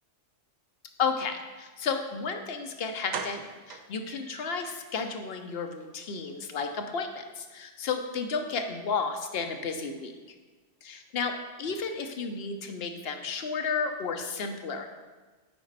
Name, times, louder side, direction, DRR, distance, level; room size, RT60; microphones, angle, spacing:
voice 1, 1.0-3.4 3.7-10.1 10.8-11.3 11.6-14.9, left 5 dB, 60° left, 5 dB, 0.9 m, -32 dB
sound 1, 2.4-2.5 3.1-4.9 5.2-5.3 5.7-5.9 6.1-6.2, right 5 dB, 55° right, 0.5 m, -40 dB
9.4 x 4.1 x 4.0 m, 1.4 s
omnidirectional pair, 1.2 m